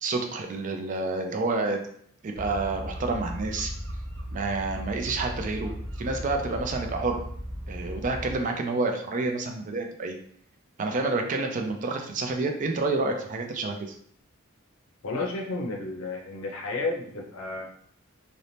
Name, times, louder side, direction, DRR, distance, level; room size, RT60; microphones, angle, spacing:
voice 1, 0.0-1.8 2.2-3.7 4.3-5.7 6.0-7.2 7.7-10.2 10.8-13.9, right 3 dB, 35° right, 4 dB, 0.3 m, -29 dB
sound 1, 2.3-8.4, equal, 70° right, 1.1 m, -36 dB
voice 2, 15.0-17.7, left 3 dB, 75° left, 1 dB, 0.6 m, -32 dB
2.6 x 2.0 x 3.1 m, 0.63 s
head